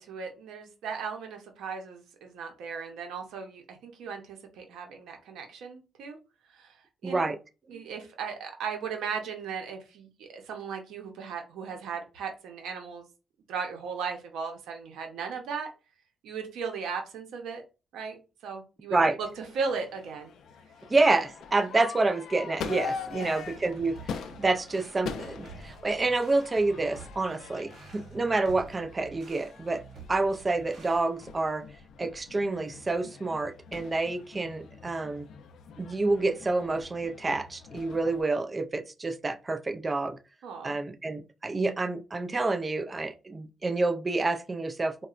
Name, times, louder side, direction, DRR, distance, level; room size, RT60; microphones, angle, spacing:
voice 1, 0.0-6.2 6.5-6.8 7.0-7.3 7.7-13.1 13.5-15.7 16.2-17.6 17.9-18.2 18.4-20.3 23.1-23.3 40.4-40.8, right 5 dB, 90° right, 0.7 m, -37 dB
voice 2, 7.0-7.4 18.9-19.2 20.9-23.9 24.4-29.8 30.1-31.6 32.0-35.3 35.8-40.2 40.6-45.1, right 3 dB, 25° right, 0.4 m, -28 dB
Crowd / Fireworks, 19.2-38.2, left 6 dB, 75° left, 0.4 m, -43 dB
sound 1, 22.9-31.0, right 4 dB, 60° right, 0.9 m, -50 dB
3.9 x 2.1 x 2.4 m
cardioid pair, 95°, 0 cm